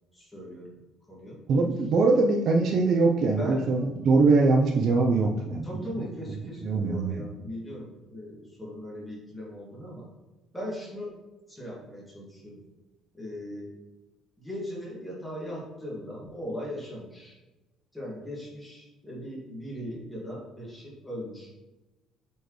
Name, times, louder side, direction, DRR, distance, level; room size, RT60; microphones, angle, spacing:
voice 1, 0.1-0.7 1.1-1.4 2.3-2.8 3.2-3.6 5.6-10.1 10.5-11.1 11.5-12.6 13.1-13.7 14.4-17.4 17.9-21.5, equal, 5° left, -5 dB, 1.9 m, -39 dB
voice 2, 1.5-5.8 6.6-7.2, right 3 dB, 45° right, 1 dB, 0.5 m, -22 dB
7.9 x 4.4 x 3.1 m, 1.1 s
cardioid pair, 170°, 0 cm